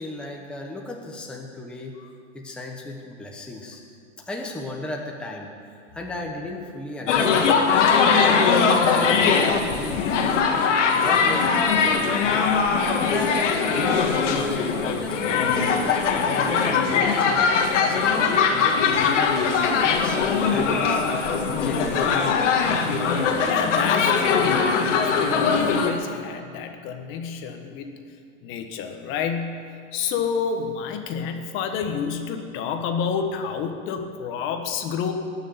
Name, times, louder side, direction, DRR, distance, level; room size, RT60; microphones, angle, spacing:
voice 1, 0.0-2.0 2.3-3.8 4.2-5.5 5.9-7.7 8.1-10.1 10.9-11.6 11.8-12.5 12.8-13.5 13.9-18.8 19.8-21.1 21.6-22.6, left 1 dB, 5° left, -1 dB, 1.1 m, -35 dB
sound 1, 7.1-25.9, left 5 dB, 80° left, 1.9 m, -21 dB
voice 2, 23.5-27.9 28.4-35.1, left 6 dB, 35° left, 6 dB, 1.5 m, -29 dB
19.5 x 6.6 x 9.6 m, 2.3 s
supercardioid pair, 150°, 36 cm